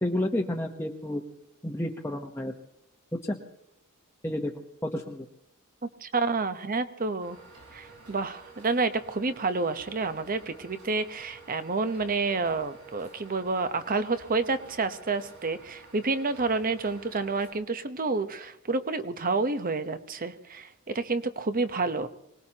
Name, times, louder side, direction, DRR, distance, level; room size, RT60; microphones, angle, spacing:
voice 1, 0.0-1.2 1.6-2.5 3.1-3.4 4.2-5.3, left 1 dB, 10° left, 0 dB, 1.0 m, -31 dB
voice 2, 6.0-7.4 7.7-22.1, right 3 dB, 40° right, 11 dB, 0.9 m, -29 dB
sound 1, 7.2-17.5, right 4 dB, 90° right, 5.2 m, -51 dB
25.5 x 19.5 x 2.9 m, 0.79 s
head